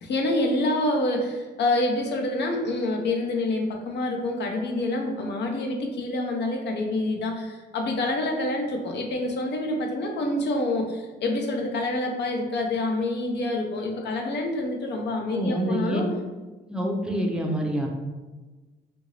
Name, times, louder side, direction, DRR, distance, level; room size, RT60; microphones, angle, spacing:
voice 1, 0.0-16.0, left 2 dB, 60° left, 2 dB, 0.7 m, -27 dB
voice 2, 15.3-16.0 16.7-17.9, right 1 dB, 5° right, 0 dB, 0.6 m, -26 dB
2.8 x 2.6 x 3.0 m, 1.2 s
cardioid pair, 90°, 20 cm